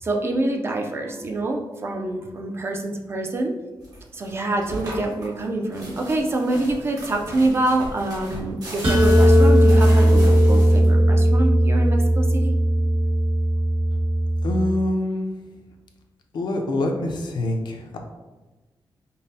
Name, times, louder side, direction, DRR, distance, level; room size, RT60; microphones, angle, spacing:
voice 1, 0.0-3.5 4.1-12.5, right 2 dB, 30° right, 2 dB, 0.4 m, -26 dB
sound 1, 3.8-11.1, right 1 dB, 50° right, 1.0 m, -36 dB
sound 2, 8.8-14.6, equal, 80° right, 1.3 m, -17 dB
voice 2, 14.4-15.4 16.3-18.0, left 1 dB, 65° left, 3 dB, 0.5 m, -25 dB
5.2 x 2.0 x 2.7 m, 1.2 s
wide cardioid pair, 175°, 8 cm